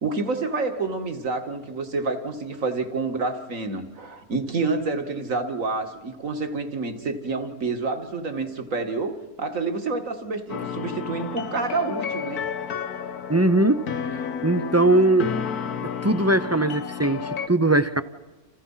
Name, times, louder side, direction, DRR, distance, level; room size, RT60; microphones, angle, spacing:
voice 1, 0.0-12.4, right 3 dB, 60° right, 7 dB, 2.5 m, -28 dB
sound 1, 10.5-17.5, left 7 dB, 80° left, 1.7 m, -31 dB
voice 2, 13.3-13.8 14.1-15.3 16.0-18.0, right 2 dB, 20° right, 12 dB, 0.4 m, -20 dB
29.5 x 28.0 x 5.7 m, 1.2 s
omnidirectional pair, 1.6 m